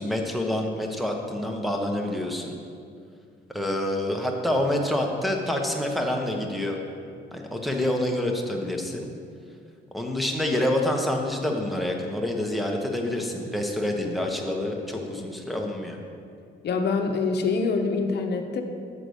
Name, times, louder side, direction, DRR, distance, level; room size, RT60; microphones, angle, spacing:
voice 1, 0.0-2.6 3.5-6.8 7.3-9.1 9.9-16.0, left 1 dB, ahead, 2 dB, 1.0 m, -27 dB
voice 2, 16.6-18.6, left 4 dB, 55° left, 4 dB, 0.8 m, -25 dB
8.2 x 3.8 x 6.4 m, 2.4 s
cardioid pair, 90°, 20 cm